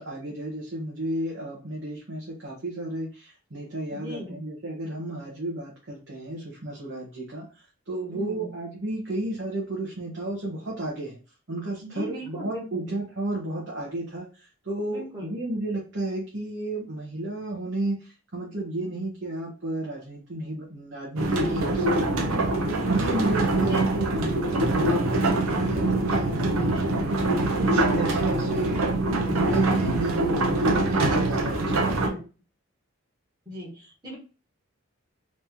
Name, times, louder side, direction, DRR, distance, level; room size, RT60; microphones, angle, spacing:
voice 1, 0.0-11.2 11.5-22.1 22.7-27.1 27.6-28.8 29.2-32.1, right 1 dB, 55° right, -4 dB, 1.0 m, -32 dB
voice 2, 3.9-4.4 8.1-8.5 11.8-12.9 14.9-15.4 21.9-22.8 23.6-24.1 26.9-27.4 31.9-32.2 33.5-34.2, equal, 20° right, -6 dB, 1.3 m, -38 dB
sound 1, 21.2-32.1, right 2 dB, 85° right, 0.8 m, -24 dB
3.3 x 2.8 x 3.5 m, 0.34 s
head